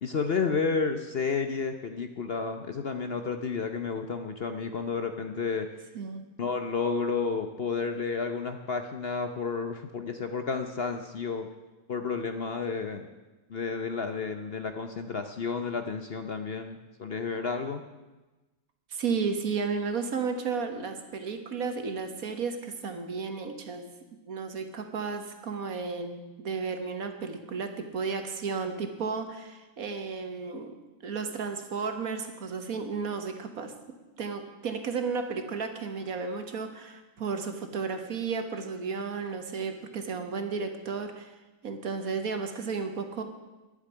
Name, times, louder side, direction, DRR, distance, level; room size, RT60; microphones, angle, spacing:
voice 1, 0.0-5.7 6.4-11.5 11.9-13.1 13.5-17.8, left 5 dB, 50° left, 7 dB, 0.8 m, -31 dB
voice 2, 5.9-6.2 18.9-23.9 24.2-30.7 31.0-33.7 34.2-41.3 41.6-43.2, right 5 dB, 65° right, 7 dB, 1.7 m, -33 dB
11.0 x 7.5 x 9.9 m, 1.1 s
omnidirectional pair, 1.7 m